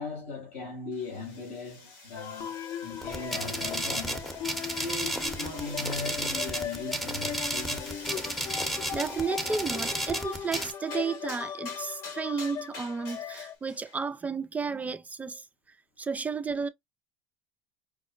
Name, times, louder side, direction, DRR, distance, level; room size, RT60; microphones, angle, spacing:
voice 1, 0.0-4.3 4.8-8.0, left 3 dB, 80° left, 2.2 m, -39 dB
sound 1, 0.9-14.0, left 3 dB, 65° left, 2.2 m, -47 dB
sound 2, 2.2-13.6, left 9 dB, 40° left, 0.5 m, -38 dB
sound 3, 3.0-10.7, right 1 dB, ahead, 0.9 m, -33 dB
voice 2, 8.9-15.4 16.0-16.7, right 5 dB, 20° right, 0.4 m, -32 dB
5.1 x 2.0 x 2.4 m
supercardioid pair, 85°, 7 cm